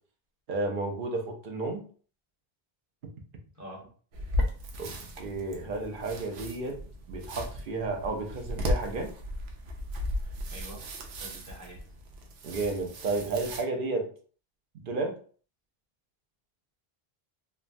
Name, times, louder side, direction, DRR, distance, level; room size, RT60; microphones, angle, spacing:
voice 1, 0.5-1.8 4.8-6.8 7.1-9.1 12.4-14.1 14.8-15.2, right 3 dB, 60° right, 3 dB, 0.8 m, -32 dB
voice 2, 3.5-3.9 10.5-11.8, right 1 dB, 20° right, -3 dB, 0.9 m, -46 dB
sound 1, 4.1-13.6, left 1 dB, 85° right, 0.8 m, -35 dB
3.2 x 2.1 x 2.5 m, 0.42 s
omnidirectional pair, 1.1 m